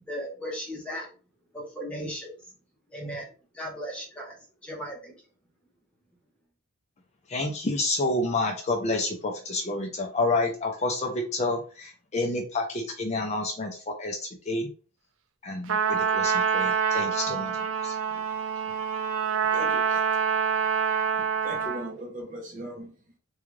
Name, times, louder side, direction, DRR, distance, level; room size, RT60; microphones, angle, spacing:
voice 1, 0.1-1.1 1.5-2.4 2.9-3.3 3.5-5.1, equal, 5° left, 0.8 m, -36 dB
voice 2, 7.3-14.7 15.4-18.0, left 2 dB, 30° left, 0.5 m, -29 dB
Trumpet, 15.7-21.9, right 6 dB, 65° right, 0.4 m, -26 dB
voice 3, 18.0-18.7 19.4-20.1 20.4-20.5 21.1-23.2, right 1 dB, 35° right, 0.9 m, -40 dB
3.6 x 2.3 x 3.1 m
head